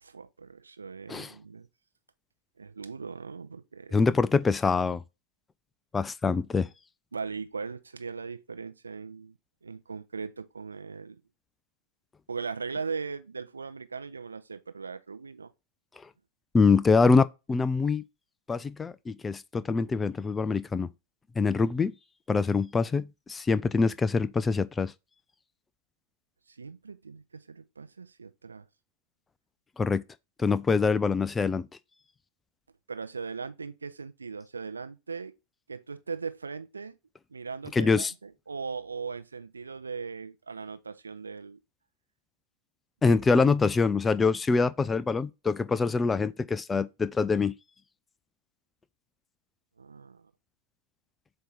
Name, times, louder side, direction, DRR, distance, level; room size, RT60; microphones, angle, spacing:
voice 1, 0.0-1.7 2.6-4.0 7.1-11.2 12.3-15.5 26.5-28.7 32.9-35.3 35.7-37.0 37.3-41.6 43.0-43.2 49.8-50.3, right 5 dB, 75° right, 0.5 m, -39 dB
voice 2, 3.9-5.0 5.9-6.7 16.5-18.0 18.5-20.9 21.4-21.9 22.3-24.9 29.8-30.0 30.4-31.7 37.7-38.1 43.0-47.5, left 4 dB, 15° left, 0.4 m, -24 dB
7.5 x 2.8 x 4.5 m
figure-of-eight pair, 90°, 0 cm